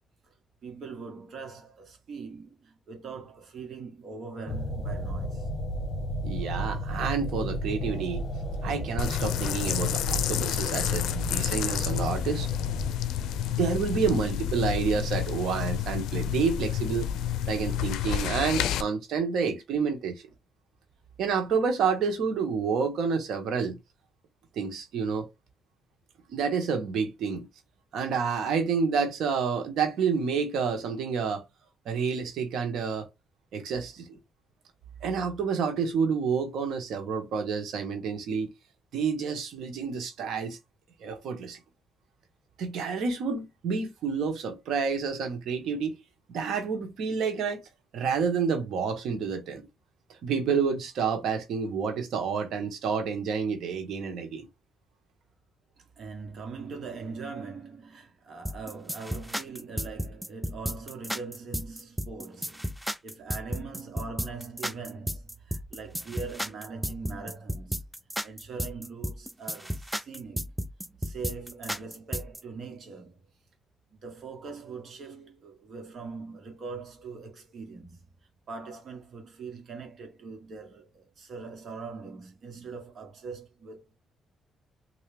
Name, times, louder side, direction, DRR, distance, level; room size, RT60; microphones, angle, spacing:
voice 1, 0.6-5.5 55.8-67.8 68.2-70.5 71.0-73.2 74.0-78.0 78.5-84.0, right 4 dB, 55° right, 1.5 m, -41 dB
sound 1, 4.5-12.9, equal, 45° left, 1.3 m, -34 dB
voice 2, 6.2-8.2 8.6-12.5 13.5-17.1 17.5-20.2 21.2-23.8 24.6-25.3 26.3-27.5 27.9-31.4 31.8-33.1 33.5-34.1 35.0-38.5 38.9-40.6 41.0-41.6 42.6-45.9 46.3-47.6 47.9-49.6 50.2-54.5, right 5 dB, 75° right, 1.2 m, -29 dB
sound 2, 9.0-18.8, left 9 dB, 85° left, 0.4 m, -29 dB
sound 3, 58.5-72.4, equal, ahead, 0.4 m, -33 dB
3.4 x 2.8 x 3.4 m
cardioid pair, 90°, 0 cm